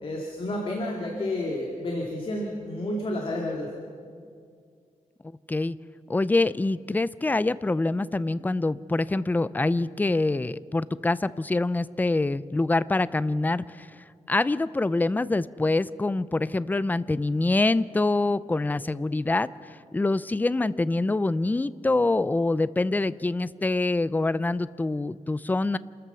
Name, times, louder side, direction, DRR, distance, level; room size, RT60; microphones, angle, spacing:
voice 1, 0.0-3.7, left 1 dB, 45° left, -1 dB, 2.3 m, -30 dB
voice 2, 6.1-13.9 14.3-19.5 19.9-25.8, left 2 dB, 15° left, 17 dB, 0.4 m, -25 dB
28.0 x 13.5 x 6.9 m, 2.2 s
wide cardioid pair, 140°, 13 cm